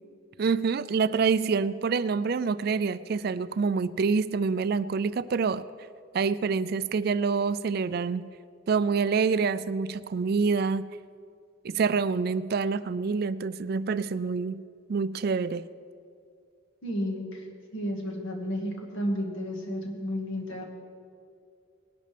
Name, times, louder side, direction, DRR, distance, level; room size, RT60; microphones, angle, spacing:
voice 1, 0.4-5.6 6.1-8.3 8.7-10.9 11.6-14.6 14.9-15.7, right 5 dB, 50° right, 15 dB, 0.3 m, -26 dB
voice 2, 16.8-17.5 17.7-20.6, equal, 65° left, 0 dB, 1.8 m, -32 dB
19.5 x 11.5 x 3.4 m, 2.4 s
head